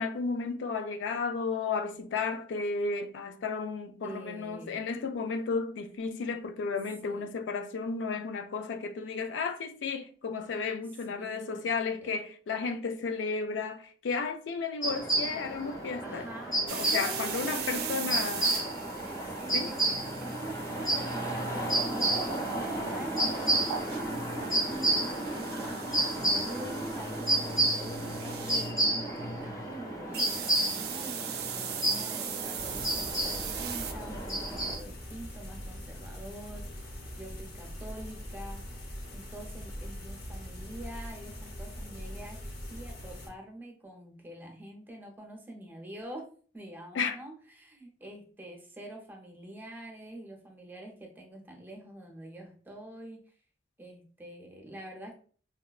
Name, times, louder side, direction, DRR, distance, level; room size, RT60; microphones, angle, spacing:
voice 1, 0.0-16.3 16.5-18.5 19.5-19.7 47.0-47.2, left 4 dB, 90° left, 0.4 m, -33 dB
voice 2, 4.0-4.8 7.0-7.3 11.1-11.7 12.0-12.2 16.0-18.3 19.4-26.0 26.3-38.7 39.1-42.4 42.7-46.3 46.5-53.2 53.8-55.2, right 1 dB, 10° right, 0.6 m, -45 dB
sound 1, 14.8-34.8, right 1 dB, 20° left, 0.8 m, -31 dB
sound 2, 16.7-28.7 30.1-33.9, right 9 dB, 60° right, 0.4 m, -40 dB
sound 3, 32.5-43.3, equal, 60° left, 0.7 m, -42 dB
3.9 x 2.1 x 2.3 m
head